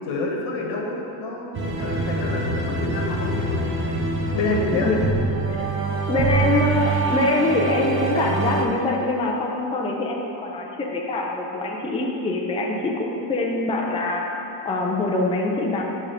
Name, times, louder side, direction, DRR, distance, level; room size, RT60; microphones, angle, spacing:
voice 1, 0.0-3.6 4.3-4.9, left 3 dB, 85° left, -1 dB, 1.4 m, -28 dB
sound 1, 1.6-8.6, right 3 dB, 25° right, 0.7 m, -25 dB
voice 2, 6.1-14.2 14.7-15.8, left 2 dB, 15° left, -1 dB, 0.4 m, -24 dB
7.4 x 3.6 x 6.5 m, 2.9 s
cardioid pair, 175°, 47 cm